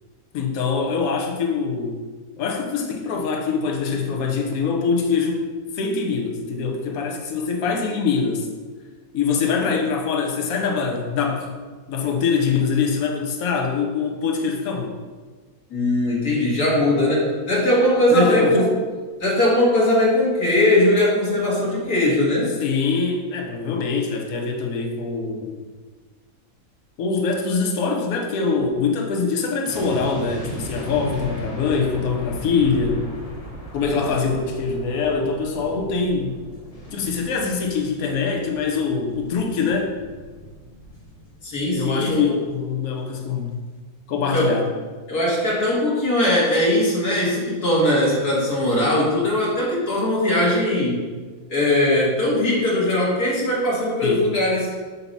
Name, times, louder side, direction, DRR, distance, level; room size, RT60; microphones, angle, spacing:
voice 1, 0.3-2.0 2.4-8.5 9.1-11.5 11.9-15.0 18.1-18.8 22.6-25.7 27.0-33.1 33.7-36.3 36.9-39.9 41.7-43.6 44.1-44.7 54.0-54.3, left 5 dB, 70° left, 2 dB, 1.3 m, -23 dB
voice 2, 15.7-18.7 19.2-22.5 33.8-34.1 41.4-42.4 44.3-44.5 45.1-51.0 51.5-54.7, left 1 dB, 90° left, -6 dB, 2.5 m, -20 dB
sound 1, 29.7-42.8 43.1-43.3, equal, 30° left, 0.9 m, -37 dB
8.1 x 2.9 x 5.4 m, 1.4 s
omnidirectional pair, 1.6 m